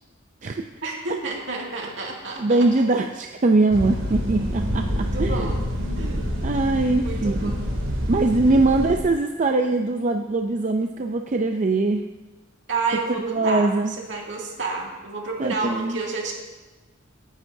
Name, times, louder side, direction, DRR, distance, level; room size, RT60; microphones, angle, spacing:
voice 1, 0.8-2.7 5.1-5.6 6.0-6.3 7.0-7.6 8.4-8.6 12.7-16.3, right 4 dB, 65° right, -2 dB, 2.3 m, -30 dB
voice 2, 2.4-5.5 6.4-7.6 8.1-12.0 13.2-13.9 15.4-16.0, right 2 dB, 40° right, 5 dB, 0.5 m, -22 dB
sound 1, 3.7-9.0, equal, 85° right, 2.7 m, -27 dB
17.5 x 9.9 x 2.7 m, 1.2 s
head